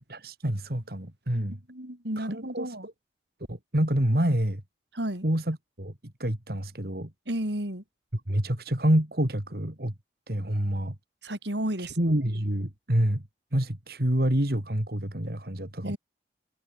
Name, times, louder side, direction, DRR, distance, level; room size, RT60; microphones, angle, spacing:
voice 1, 0.1-1.6 2.2-2.9 3.5-4.6 5.2-5.9 6.2-7.1 8.3-9.9 10.3-10.9 11.8-13.2 13.5-16.0, right 1 dB, 55° right, 3.0 m, -27 dB
voice 2, 1.5-2.9 4.9-5.3 7.3-7.8 11.2-12.2 15.8-16.0, right 1 dB, 75° right, 6.3 m, -32 dB
open air
head